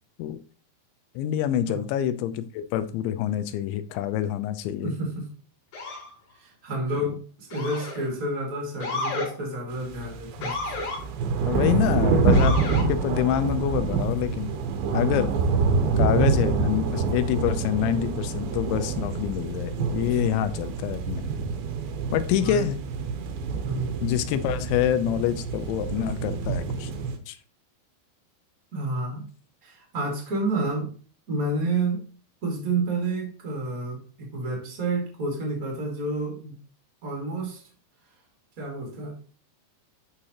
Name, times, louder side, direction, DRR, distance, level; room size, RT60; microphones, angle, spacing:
voice 1, 1.2-4.9 11.5-12.6 12.9-14.5 14.9-15.3 16.0-21.2 22.1-22.8 24.0-26.9 27.3-27.4, left 11 dB, 85° left, 2.9 m, -26 dB
voice 2, 4.8-5.3 6.4-10.6 22.4-22.7 23.5-23.9 28.7-29.3 29.6-30.9 31.3-32.0 32.4-36.5 37.0-37.6 38.6-39.2, right 2 dB, 45° right, 1.1 m, -30 dB
Motor vehicle (road) / Siren, 5.7-6.1 7.5-8.1 8.8-9.3 10.4-11.0 12.3-12.9, left 3 dB, 50° left, 3.6 m, -31 dB
sound 1, 9.8-27.2, right 4 dB, 75° right, 2.3 m, -26 dB
11.5 x 4.8 x 2.9 m
omnidirectional pair, 5.4 m